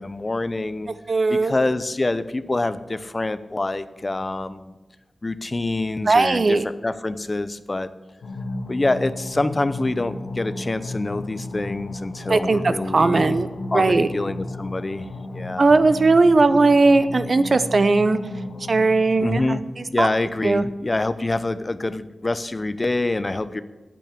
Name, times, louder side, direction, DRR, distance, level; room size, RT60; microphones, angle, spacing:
voice 1, 0.0-0.9 1.3-4.7 5.2-7.9 8.7-13.5 13.7-15.7 19.2-23.6, left 2 dB, 30° left, 13 dB, 0.6 m, -26 dB
voice 2, 1.1-1.5 6.1-6.6 12.3-13.5 13.7-14.1 15.6-18.2 18.7-19.6 20.0-20.1 20.4-20.6, right 3 dB, 45° right, 12 dB, 0.7 m, -18 dB
sound 1, 8.2-19.5, left 2 dB, 85° left, 1.6 m, -34 dB
9.1 x 8.3 x 8.5 m, 1.2 s
wide cardioid pair, 110°, 0 cm